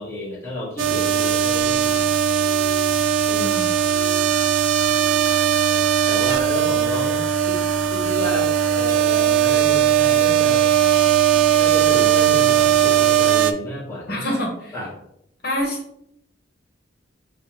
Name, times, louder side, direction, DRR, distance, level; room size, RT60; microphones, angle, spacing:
voice 1, 0.0-2.1 3.3-3.5 5.7-10.7 11.6-14.2 14.7-14.9, left 1 dB, 15° left, -7 dB, 1.4 m, -32 dB
sound 1, 0.8-13.5, right 9 dB, 80° right, 0.4 m, -18 dB
voice 2, 3.3-3.7 14.1-14.7 15.4-15.8, equal, 55° left, -2 dB, 1.2 m, -26 dB
6.6 x 2.5 x 3.2 m, 0.74 s
head